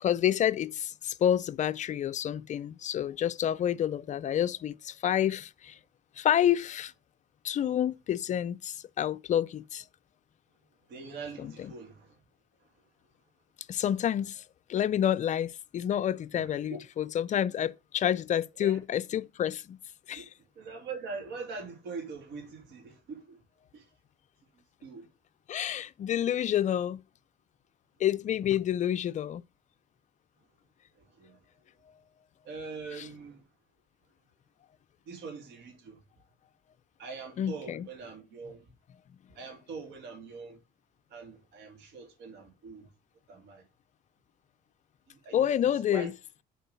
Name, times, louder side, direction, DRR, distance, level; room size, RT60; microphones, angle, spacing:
voice 1, 0.0-5.8 6.2-6.9 7.4-9.8 11.4-11.7 13.7-14.4 14.7-19.8 20.1-20.3 25.5-27.0 28.0-29.4 32.9-33.1 37.4-37.9 45.3-46.1, left 10 dB, 45° left, 0.5 m, -29 dB
voice 2, 10.9-12.1 16.3-16.8 18.6-18.8 20.2-20.3 20.6-23.4 23.7-23.8 24.8-25.1 31.2-31.4 32.4-33.4 35.1-36.0 37.0-38.6 39.3-40.6 41.1-42.9 43.3-43.6 45.1-45.4 45.9-46.1, right 4 dB, 80° right, 2.8 m, -42 dB
7.3 x 4.5 x 6.8 m
cardioid pair, 110°, 17 cm